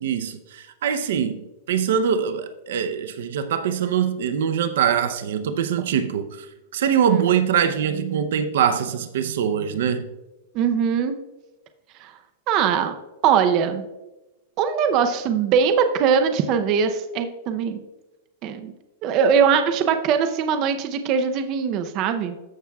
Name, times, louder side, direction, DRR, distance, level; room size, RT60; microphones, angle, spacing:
voice 1, 0.0-6.5 6.7-10.1, right 8 dB, 75° right, 0.6 m, -23 dB
voice 2, 10.5-11.1 12.0-12.1 12.5-12.9 13.2-13.9 14.6-17.8 18.4-18.7 19.0-22.4, right 7 dB, 35° right, 0.6 m, -21 dB
14.0 x 6.1 x 2.3 m
supercardioid pair, 165°, 0 cm